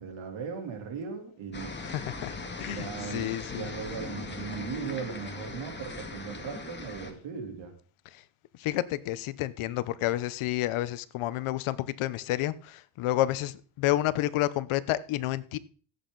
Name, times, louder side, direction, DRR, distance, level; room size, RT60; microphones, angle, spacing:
voice 1, 0.0-2.0 2.7-7.7, right 6 dB, 65° right, 3.6 m, -38 dB
sound 1, 1.5-7.1, left 3 dB, 20° left, 2.3 m, -39 dB
voice 2, 1.8-3.7 8.1-8.2 8.6-15.6, left 15 dB, 75° left, 1.0 m, -30 dB
16.0 x 8.4 x 4.0 m
cardioid pair, 105°, 50 cm